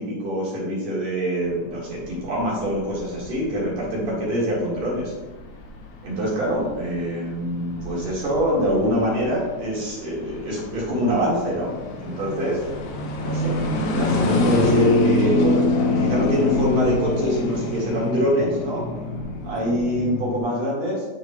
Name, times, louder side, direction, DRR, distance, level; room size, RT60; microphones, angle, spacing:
voice 1, 0.0-5.1 6.0-11.7 12.0-12.6 13.2-15.7 16.0-18.9 19.4-21.1, equal, 50° right, -6 dB, 2.5 m, -24 dB
sound 1, 1.5-20.4, left 2 dB, 80° left, 3.1 m, -26 dB
11.0 x 4.6 x 2.3 m, 1.1 s
omnidirectional pair, 5.0 m